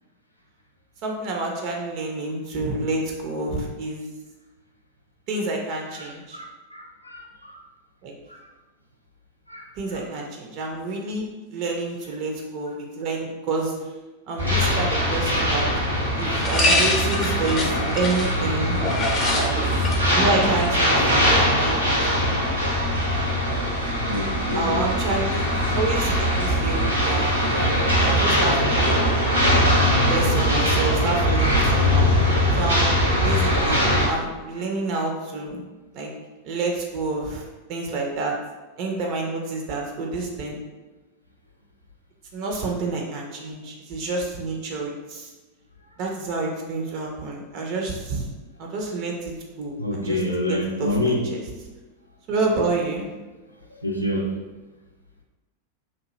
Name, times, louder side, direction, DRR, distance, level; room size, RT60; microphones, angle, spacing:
voice 1, 1.0-4.1 5.3-6.4 8.0-8.1 9.8-13.7 14.3-15.7 16.2-18.8 19.3-19.5 20.0-21.9 24.5-29.1 29.9-32.2 32.5-36.1 36.4-37.4 37.7-38.3 38.8-40.6 42.3-45.3 46.0-48.3 48.6-50.2 50.5-51.4 52.3-53.1, right 3 dB, 40° right, 0 dB, 0.5 m, -28 dB
voice 2, 5.9-7.6 8.3-8.4 9.5-10.0 24.0-25.1 49.8-51.3 53.8-54.4, left 1 dB, 90° left, 0 dB, 0.4 m, -28 dB
sound 1, 14.4-22.4, left 2 dB, 30° left, 0.6 m, -28 dB
sound 2, 14.4-34.1, equal, 80° right, 1.0 m, -21 dB
2.8 x 2.2 x 3.0 m, 1.2 s
figure-of-eight pair, 90°, 0 cm